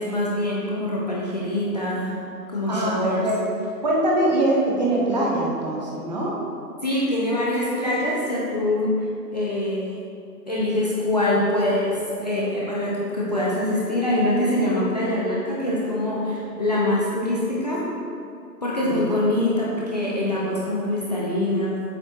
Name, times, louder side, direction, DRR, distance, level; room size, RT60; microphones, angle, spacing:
voice 1, 0.0-2.2 2.5-3.3 6.8-8.9 9.3-9.9 10.5-17.8 18.6-21.8, left 1 dB, 25° left, -6 dB, 0.6 m, -24 dB
voice 2, 2.7-3.4 3.8-6.4 18.8-19.1, right 1 dB, 25° right, -4 dB, 0.8 m, -23 dB
7.8 x 6.2 x 3.0 m, 2.6 s
figure-of-eight pair, 145°, 50 cm